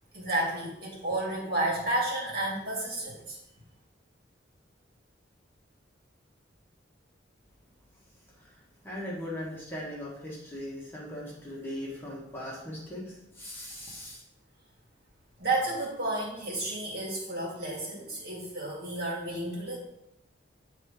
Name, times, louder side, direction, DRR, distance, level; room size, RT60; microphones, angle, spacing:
voice 1, 0.1-3.4 15.4-19.8, right 2 dB, 55° right, -4 dB, 2.3 m, -31 dB
voice 2, 8.8-14.2, left 1 dB, 10° left, -5 dB, 1.5 m, -39 dB
8.4 x 3.5 x 4.9 m, 0.84 s
head